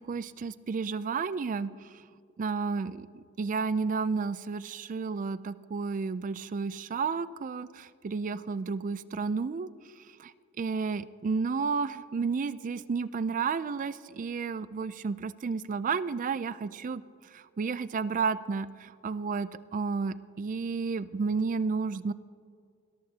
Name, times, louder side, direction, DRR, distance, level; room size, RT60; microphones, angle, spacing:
voice 1, 0.1-1.7 2.4-9.7 10.2-10.3 10.6-17.0 17.3-22.1, right 5 dB, 35° right, 16 dB, 0.3 m, -32 dB
21.0 x 13.5 x 2.8 m, 2.2 s
head